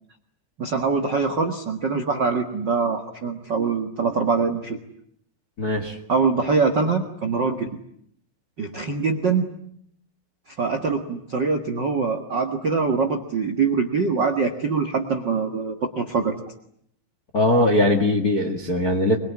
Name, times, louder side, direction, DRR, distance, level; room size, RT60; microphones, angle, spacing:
voice 1, 0.6-4.8 6.1-7.8 8.6-9.5 10.6-16.3, right 4 dB, 50° right, 4 dB, 1.3 m, -23 dB
voice 2, 5.6-6.0 17.3-19.2, left 1 dB, 35° left, 4 dB, 1.5 m, -20 dB
24.5 x 22.5 x 9.7 m, 0.70 s
omnidirectional pair, 4.6 m